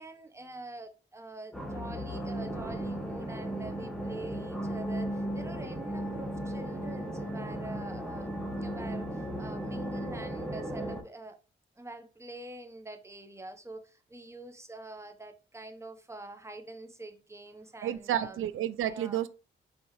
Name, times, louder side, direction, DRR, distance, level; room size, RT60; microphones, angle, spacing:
voice 1, 0.0-8.3 8.6-11.4 11.8-18.5 18.8-19.2, right 2 dB, 15° right, 0.9 m, -45 dB
sound 1, 1.5-11.0, right 1 dB, 5° left, 1.1 m, -36 dB
voice 2, 17.8-19.3, right 11 dB, 80° right, 0.4 m, -31 dB
4.9 x 3.4 x 3.1 m
cardioid pair, 70°, 21 cm